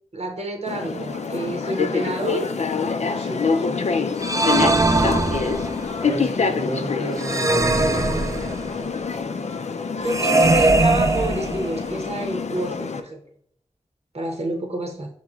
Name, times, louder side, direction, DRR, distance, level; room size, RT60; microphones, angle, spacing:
voice 1, 0.1-2.5 3.5-3.7 4.5-5.2 10.0-13.2 14.1-15.1, right 1 dB, 60° right, 3 dB, 0.7 m, -28 dB
sound 1, 0.7-13.0, left 5 dB, 75° left, 0.4 m, -26 dB
voice 2, 3.1-3.5 6.0-8.1, equal, 45° left, 1 dB, 0.9 m, -31 dB
sound 2, 4.2-5.9 7.2-8.8 10.1-11.9, right 2 dB, 30° right, 0.4 m, -21 dB
5.8 x 2.1 x 3.4 m, 0.68 s
wide cardioid pair, 55°, 12 cm